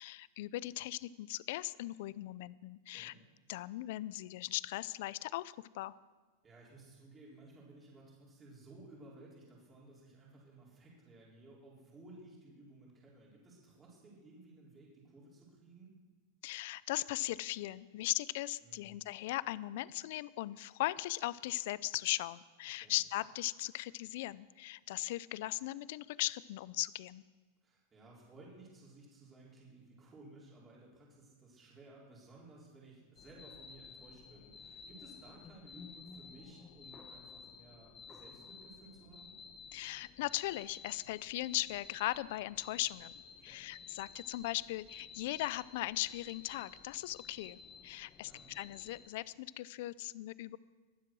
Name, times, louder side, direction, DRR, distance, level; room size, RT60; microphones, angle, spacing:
voice 1, 0.0-3.1 3.5-6.0 16.4-27.2 39.7-43.1 43.4-50.6, left 17 dB, 60° left, 19 dB, 0.4 m, -38 dB
voice 2, 2.9-3.2 6.4-15.9 18.6-19.0 22.8-23.0 27.6-39.4 43.4-43.7 48.2-48.5, right 2 dB, 20° right, -4 dB, 4.3 m, -57 dB
sound 1, 33.2-49.1, left 5 dB, 20° left, 1.2 m, -54 dB
21.5 x 7.7 x 6.2 m, 1.4 s
supercardioid pair, 140°, 0 cm